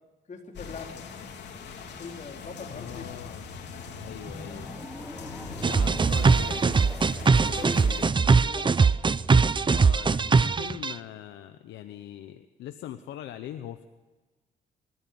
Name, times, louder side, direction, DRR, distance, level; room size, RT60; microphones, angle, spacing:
voice 1, 0.3-1.0 2.0-3.2 7.4-9.0, left 4 dB, 40° left, 2 dB, 4.3 m, -42 dB
sound 1, 0.5-8.1, left 5 dB, 75° left, 3.4 m, -41 dB
voice 2, 2.7-3.5 4.0-4.7 5.7-6.9 7.4-8.1 9.6-13.8, left 12 dB, 90° left, 9 dB, 1.0 m, -42 dB
sound 2, 4.0-9.3, equal, ahead, 1.1 m, -44 dB
sound 3, 5.6-10.9, right 4 dB, 25° right, 0.7 m, -21 dB
28.5 x 14.5 x 7.0 m, 1.2 s
cardioid pair, 80°, 18 cm